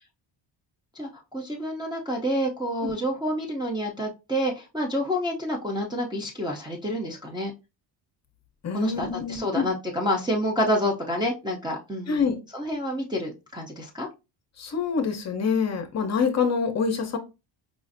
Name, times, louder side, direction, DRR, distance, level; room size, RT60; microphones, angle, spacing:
voice 1, 1.0-7.5 8.7-12.2 12.5-14.1, equal, 10° right, 0.4 m, -28 dB
voice 2, 8.6-9.7 12.1-12.4 14.6-17.2, left 5 dB, 35° left, 0.6 m, -26 dB
4.9 x 2.4 x 2.5 m
cardioid pair, 155°, 46 cm